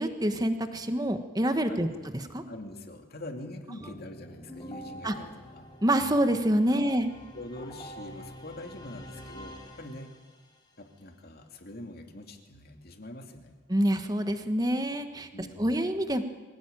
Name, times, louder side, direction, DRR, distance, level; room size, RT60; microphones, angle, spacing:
voice 1, 0.0-1.9 2.3-2.4 5.0-5.1 5.8-7.1 13.7-16.2, right 1 dB, 20° right, 8 dB, 1.4 m, -26 dB
voice 2, 2.5-5.7 6.7-7.0 7.3-10.1 10.8-13.5 15.3-15.7, left 1 dB, 50° left, 4 dB, 2.5 m, -44 dB
sound 1, 3.8-10.6, equal, 20° left, 2.7 m, -47 dB
23.5 x 17.0 x 9.1 m, 1.4 s
head